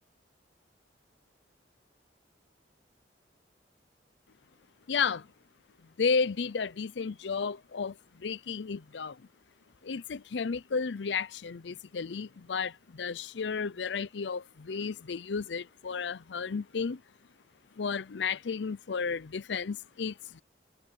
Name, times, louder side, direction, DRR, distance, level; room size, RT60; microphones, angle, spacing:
voice 1, 4.9-5.3 6.0-9.2 9.8-17.0 17.8-20.4, left 5 dB, 80° left, 0.6 m, -33 dB
head